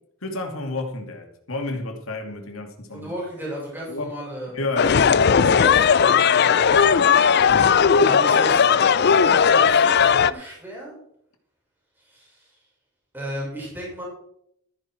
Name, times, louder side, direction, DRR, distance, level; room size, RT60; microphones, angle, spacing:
voice 1, 0.2-3.1 3.9-4.1 4.5-5.7 7.5-7.8, left 2 dB, 80° left, 3 dB, 2.5 m, -31 dB
voice 2, 2.9-4.5 5.6-7.2 7.9-8.7 9.2-11.0 12.0-12.6 13.1-14.0, right 1 dB, 10° right, -5 dB, 6.1 m, -35 dB
sound 1, 4.8-10.3, left 6 dB, 55° left, 0.5 m, -17 dB
13.5 x 10.5 x 4.5 m, 0.73 s
head